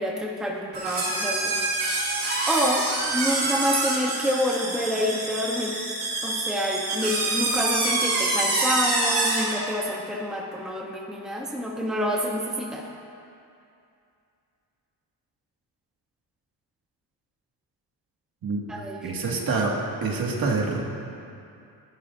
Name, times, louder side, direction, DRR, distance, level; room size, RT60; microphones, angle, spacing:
voice 1, 0.0-1.6 2.5-5.8 6.2-12.8 18.7-19.1, equal, ahead, -2 dB, 0.9 m, -28 dB
sound 1, 0.7-9.6, right 2 dB, 40° right, 4.1 m, -26 dB
voice 2, 19.0-19.7 20.0-20.8, right 4 dB, 55° right, -1 dB, 2.0 m, -26 dB
27.5 x 11.5 x 2.6 m, 2.6 s
wide cardioid pair, 180°, 42 cm